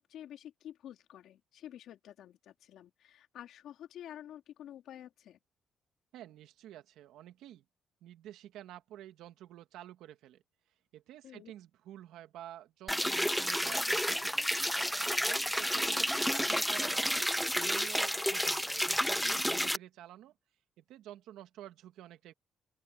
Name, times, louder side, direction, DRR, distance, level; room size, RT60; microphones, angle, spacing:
voice 1, 0.0-5.4 11.2-11.5, left 11 dB, 80° left, 3.5 m, -49 dB
voice 2, 6.1-7.6 8.0-10.4 10.9-14.6 15.2-17.3 17.6-20.3 20.8-22.3, right 12 dB, 85° right, 1.7 m, -50 dB
sound 1, 12.9-19.8, equal, ahead, 0.4 m, -31 dB
open air
cardioid pair, 90°, 0 cm